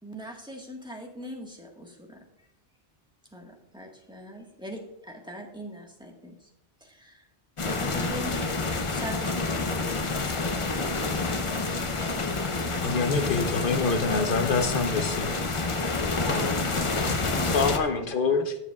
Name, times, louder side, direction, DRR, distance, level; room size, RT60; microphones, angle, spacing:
voice 1, 0.0-2.2 3.3-6.5 6.8-7.3 7.6-8.4 8.9-10.0, equal, 5° right, 1 dB, 1.5 m, -41 dB
sound 1, 7.6-17.8, left 3 dB, 35° left, 0.8 m, -28 dB
voice 2, 12.8-15.3 17.5-18.6, left 4 dB, 60° left, 7 dB, 0.9 m, -26 dB
voice 3, 15.7-18.3, equal, 60° right, -4 dB, 4.4 m, -39 dB
15.5 x 7.4 x 2.4 m, 0.84 s
omnidirectional pair, 1.0 m